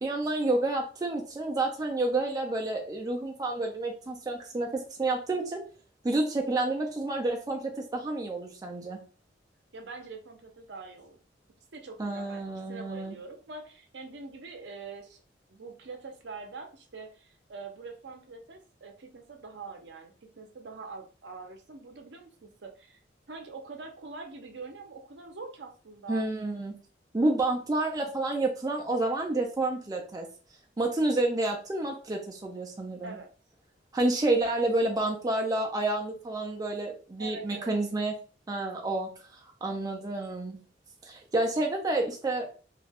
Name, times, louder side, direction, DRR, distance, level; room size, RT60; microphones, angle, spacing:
voice 1, 0.0-5.6 6.0-9.0 12.0-13.1 26.1-26.7 27.1-30.3 30.8-33.2 33.9-38.1 38.5-40.6 41.0-42.5, right 2 dB, 20° right, 1 dB, 0.4 m, -29 dB
voice 2, 9.7-11.2 11.7-12.4 12.7-15.2 15.5-23.0 23.3-26.2 33.0-33.3 37.2-37.7, right 4 dB, 65° right, 4 dB, 0.6 m, -44 dB
2.4 x 2.2 x 3.3 m, 0.37 s
head